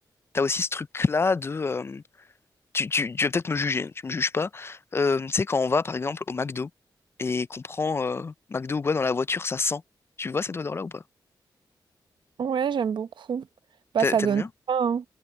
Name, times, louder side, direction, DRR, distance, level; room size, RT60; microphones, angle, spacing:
voice 1, 0.3-2.0 2.7-6.7 7.2-9.8 10.2-11.0 14.0-14.5, left 4 dB, 30° left, 0.3 m, -27 dB
voice 2, 12.4-13.5 13.9-15.0, right 7 dB, 75° right, 0.8 m, -26 dB
wide cardioid pair, 125°, 8 cm